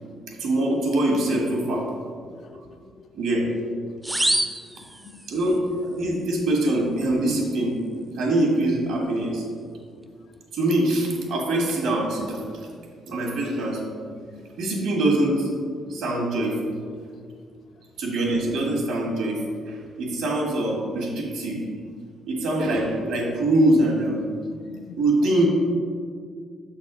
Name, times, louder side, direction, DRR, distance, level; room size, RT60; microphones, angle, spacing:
voice 1, 0.3-1.9 3.1-3.7 5.3-7.8 8.2-9.5 10.5-12.4 13.1-13.8 14.6-15.5 15.9-16.6 18.0-19.4 19.7-21.6 22.3-24.2 25.0-25.5, right 1 dB, 85° right, -1 dB, 1.6 m, -23 dB
voice 2, 2.2-3.1 4.3-4.4 5.1-5.2 14.3-14.4 24.5-24.9, left 6 dB, 60° left, 8 dB, 0.4 m, -47 dB
sound 1, 4.0-5.6, right 1 dB, 10° right, 0.4 m, -26 dB
6.6 x 4.1 x 5.0 m, 2.1 s
cardioid pair, 90°, 0 cm